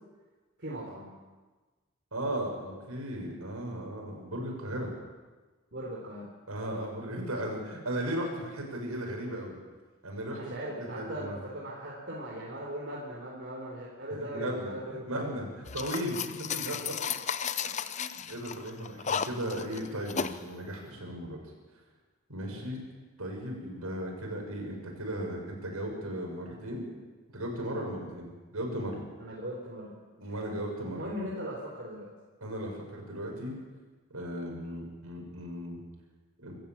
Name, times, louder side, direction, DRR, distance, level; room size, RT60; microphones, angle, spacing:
voice 1, 0.6-1.1 5.7-6.3 10.3-15.3 22.5-22.6 29.2-30.5 30.9-32.1, equal, 50° right, -4 dB, 4.1 m, -39 dB
voice 2, 2.1-4.9 6.5-9.6 10.0-10.4 10.9-11.4 14.2-15.5 15.7-16.9 17.9-21.4 22.3-22.8 23.2-26.9 27.3-29.0 30.2-31.1 32.4-33.5 34.1-35.8 36.4-36.6, right 1 dB, 90° right, 1 dB, 6.6 m, -36 dB
sound 1, 15.7-20.4, left 7 dB, 35° left, 0.6 m, -34 dB
25.5 x 14.5 x 7.4 m, 1.3 s
head